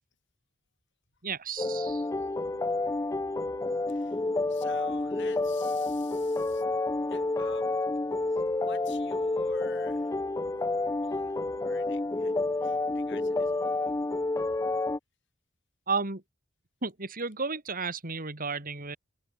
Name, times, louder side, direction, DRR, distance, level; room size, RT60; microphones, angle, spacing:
voice 1, 1.2-2.0 15.9-16.2 16.8-19.0, right 4 dB, 45° right, 3.2 m, -33 dB
sound 1, 1.6-15.0, left 2 dB, 15° left, 0.4 m, -29 dB
voice 2, 1.9-2.3 3.9-6.6 7.1-7.7 8.3-10.4 11.0-13.9, left 5 dB, 60° left, 5.1 m, -50 dB
head